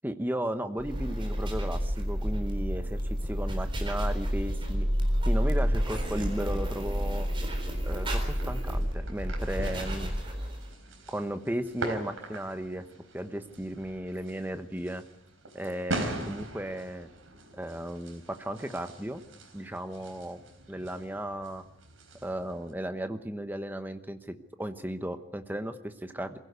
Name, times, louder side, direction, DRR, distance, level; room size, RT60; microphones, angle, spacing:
voice 1, 0.0-4.9 5.3-7.3 7.8-10.1 11.1-12.8 13.1-15.0 15.5-17.1 17.5-19.2 19.5-20.4 20.7-21.6 22.2-26.4, right 1 dB, 10° right, 8 dB, 1.0 m, -35 dB
sound 1, 0.8-10.7, equal, 25° right, 4.0 m, -30 dB
sound 2, 7.8-22.7, right 2 dB, 75° right, 4.1 m, -42 dB
23.0 x 16.5 x 8.2 m, 0.91 s
head